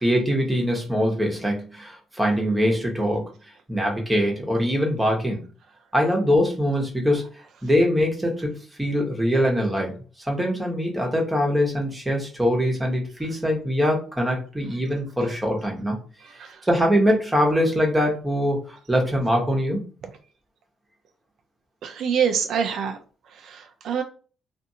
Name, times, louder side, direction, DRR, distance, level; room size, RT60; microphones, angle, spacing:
voice 1, 0.0-3.2 3.7-5.4 5.9-7.2 7.6-8.5 8.8-9.9 10.3-16.0 16.6-19.8, equal, 10° right, 0 dB, 1.0 m, -23 dB
voice 2, 16.2-16.7 21.8-23.0 23.3-24.0, right 7 dB, 70° right, 5 dB, 0.4 m, -26 dB
2.5 x 2.5 x 2.7 m, 0.38 s
cardioid pair, 90°, 0 cm